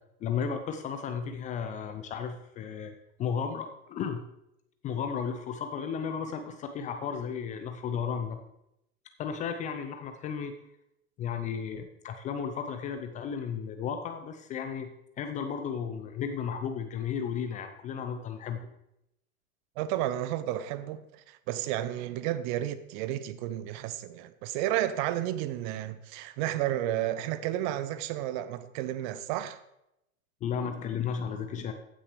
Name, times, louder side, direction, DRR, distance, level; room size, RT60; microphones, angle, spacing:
voice 1, 0.2-2.9 3.2-4.2 4.8-8.4 9.2-10.5 11.2-14.9 15.2-18.6 30.4-31.7, left 7 dB, 20° left, 0.4 m, -34 dB
voice 2, 19.8-29.6, right 13 dB, 35° right, 0.5 m, -32 dB
15.0 x 6.2 x 3.2 m
hypercardioid pair, 100°, 43 cm